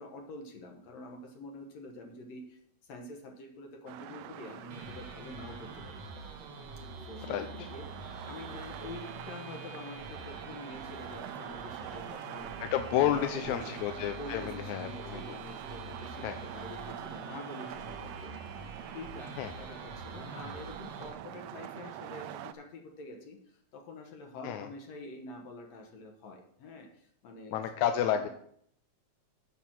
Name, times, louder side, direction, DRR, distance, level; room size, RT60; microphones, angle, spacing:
voice 1, 0.0-6.0 7.0-12.6 12.9-27.6, left 2 dB, 65° left, 2 dB, 2.3 m, -46 dB
sound 1, 3.9-22.5, right 12 dB, 85° right, 1.4 m, -45 dB
sound 2, 4.7-21.1, right 2 dB, 60° right, 2.6 m, -46 dB
voice 2, 7.3-7.7 12.6-15.4 16.2-16.4 19.4-19.5 24.4-24.7 27.5-28.3, left 10 dB, 85° left, 8 dB, 2.0 m, -31 dB
7.3 x 6.1 x 7.2 m, 0.67 s
omnidirectional pair, 3.4 m